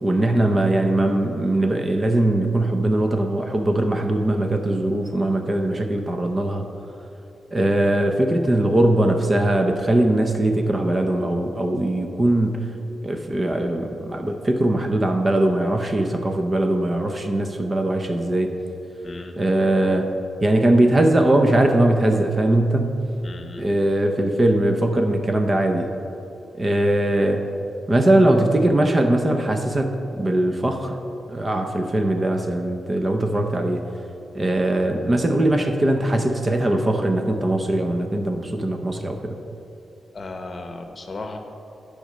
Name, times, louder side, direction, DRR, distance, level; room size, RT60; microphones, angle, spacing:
voice 1, 0.0-6.7 7.5-12.7 13.0-18.5 19.4-20.1 20.4-22.9 23.6-25.9 26.6-27.5 27.9-31.0 31.3-33.8 34.3-39.4, right 1 dB, 25° right, 4 dB, 0.7 m, -20 dB
voice 2, 19.0-19.4 23.2-23.7 40.1-41.4, left 2 dB, 35° left, 5 dB, 0.9 m, -35 dB
11.5 x 5.1 x 6.6 m, 2.9 s
wide cardioid pair, 145°, 0 cm